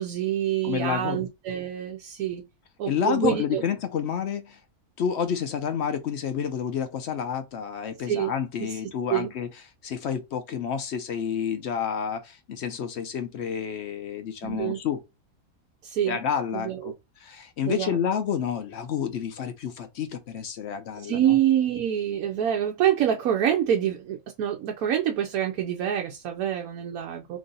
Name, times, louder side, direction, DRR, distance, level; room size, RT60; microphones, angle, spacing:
voice 1, 0.0-2.4 2.8-3.6 8.1-8.3 9.1-9.3 14.4-14.8 15.8-16.2 16.5-16.9 17.7-18.0 21.0-27.4, right 10 dB, 85° right, 1.1 m, -26 dB
voice 2, 0.6-1.2 2.9-4.6 5.0-9.5 9.8-15.0 16.1-16.9 17.2-21.4, left 8 dB, 65° left, 0.7 m, -29 dB
3.0 x 2.6 x 3.8 m
omnidirectional pair, 1.5 m